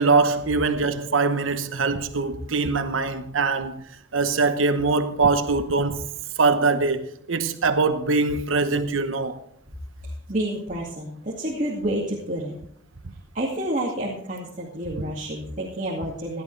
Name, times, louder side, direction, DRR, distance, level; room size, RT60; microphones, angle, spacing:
voice 1, 0.0-3.8 4.1-6.0 6.4-9.4, right 4 dB, 90° right, 1.0 m, -22 dB
voice 2, 10.3-12.6 13.3-16.4, right 1 dB, 40° right, 2.2 m, -29 dB
16.5 x 11.5 x 3.3 m
head